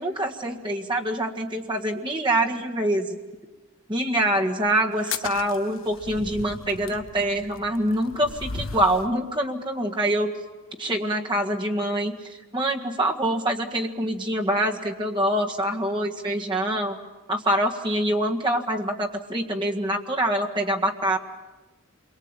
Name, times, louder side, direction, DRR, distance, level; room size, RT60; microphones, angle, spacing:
voice 1, 0.0-3.2 3.9-10.3 10.8-17.0 17.3-21.2, right 1 dB, 20° right, 1 dB, 1.8 m, -25 dB
sound 1, 4.9-9.1, left 5 dB, 65° left, 0.9 m, -37 dB
28.5 x 23.0 x 9.0 m, 1.2 s
head